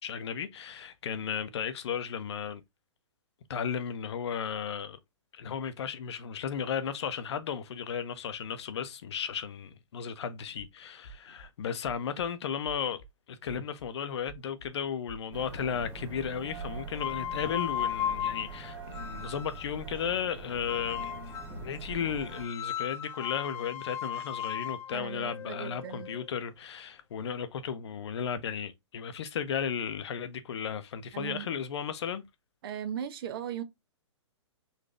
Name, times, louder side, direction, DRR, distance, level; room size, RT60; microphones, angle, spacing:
voice 1, 0.0-2.6 3.5-5.0 5.3-13.0 13.3-32.2, left 7 dB, 60° left, 0.7 m, -35 dB
sound 1, 10.4-10.7 11.0-11.5 11.8-12.3 12.6-13.1 13.5-13.9 14.3-14.7 15.1-15.5, right 1 dB, 85° left, 1.1 m, -50 dB
sound 2, 15.3-22.5, right 3 dB, 15° right, 1.1 m, -43 dB
sound 3, 16.9-19.8 20.7-21.7 22.3-26.3, left 9 dB, 15° left, 0.4 m, -36 dB
voice 2, 24.9-26.1 31.1-31.5 32.6-33.6, right 9 dB, 50° right, 0.6 m, -38 dB
4.0 x 2.6 x 3.3 m
hypercardioid pair, 130°, 16 cm